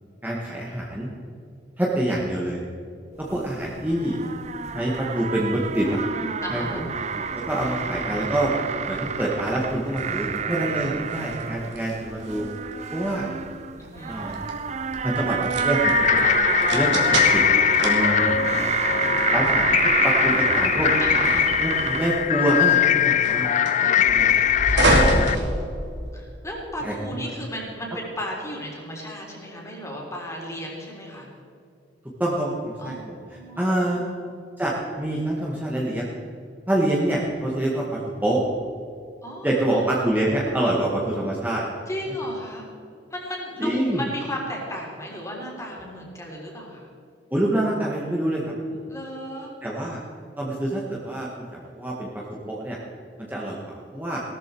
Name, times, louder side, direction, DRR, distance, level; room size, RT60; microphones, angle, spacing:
voice 1, 0.2-1.1 1.8-2.6 3.2-4.2 4.7-6.0 6.5-6.9 7.3-8.5 8.9-12.5 12.9-13.3 14.1-14.5 15.0-16.3 16.7-17.4 17.8-18.4 19.3-20.9 21.6-24.3 25.0-25.3 26.8-26.9 27.2-27.4 32.2-34.1 34.6-36.2 36.7-38.4 39.4-41.6 43.6-44.0 47.3-48.8 49.6-50.0 50.4-52.8 53.2-54.2, right 1 dB, 10° right, -4 dB, 1.7 m, -26 dB
sound 1, 3.2-22.2, right 6 dB, 40° right, 0.6 m, -28 dB
voice 2, 6.4-6.8 13.8-14.1 21.0-21.5 23.7-25.1 26.1-31.3 32.8-32.9 33.3-33.6 39.2-39.6 39.9-40.0 41.9-42.7 43.1-46.9 48.9-49.5, equal, 15° left, -2 dB, 3.8 m, -35 dB
sound 2, 6.9-26.3, right 2 dB, 85° right, 3.0 m, -30 dB
sound 3, 15.8-25.4, left 10 dB, 40° left, 0.4 m, -21 dB
18.0 x 13.5 x 4.6 m, 2.6 s
head